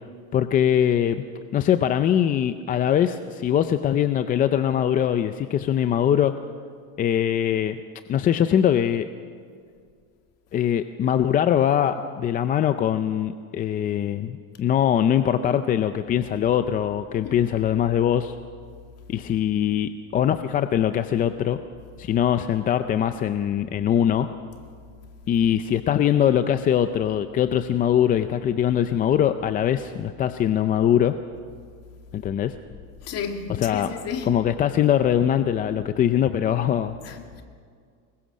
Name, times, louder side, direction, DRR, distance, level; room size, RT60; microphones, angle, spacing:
voice 1, 0.3-1.2 1.5-6.3 7.0-7.8 8.1-9.1 10.5-18.4 19.1-21.6 22.0-24.3 25.3-31.1 32.1-32.5 33.6-33.9 34.3-37.0, left 10 dB, 25° left, 0.5 m, -22 dB
voice 2, 17.2-17.7 33.0-34.3 37.0-37.4, left 6 dB, 40° left, 2.3 m, -33 dB
25.5 x 21.5 x 6.4 m
cardioid pair, 160°, 38 cm